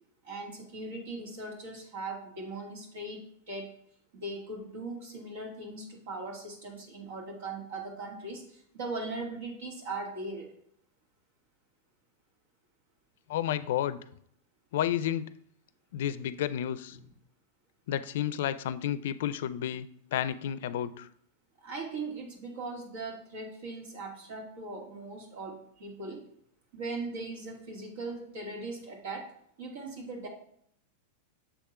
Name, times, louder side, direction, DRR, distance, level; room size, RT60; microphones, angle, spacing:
voice 1, 0.2-3.7 4.1-10.5 16.9-17.1 21.6-26.2 26.7-30.3, right 3 dB, 70° right, 1 dB, 2.2 m, -39 dB
voice 2, 13.3-14.0 14.7-15.3 15.9-17.0 17.9-21.1, left 11 dB, 70° left, 14 dB, 0.4 m, -31 dB
7.0 x 3.7 x 5.6 m, 0.67 s
supercardioid pair, 140°, 0 cm